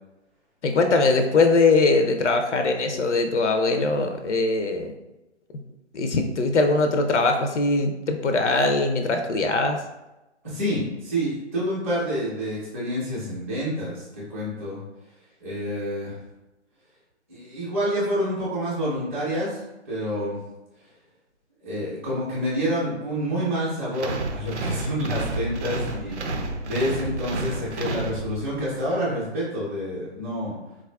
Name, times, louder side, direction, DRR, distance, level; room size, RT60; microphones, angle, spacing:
voice 1, 0.6-4.9 5.9-9.8, left 3 dB, 75° left, 5 dB, 0.5 m, -21 dB
voice 2, 10.4-14.8 15.4-16.1 17.3-20.4 21.6-30.5, equal, 10° right, -9 dB, 0.5 m, -28 dB
sound 1, 23.9-28.7, right 2 dB, 70° right, 0.6 m, -30 dB
3.9 x 2.3 x 2.2 m, 0.98 s
figure-of-eight pair, 145°, 36 cm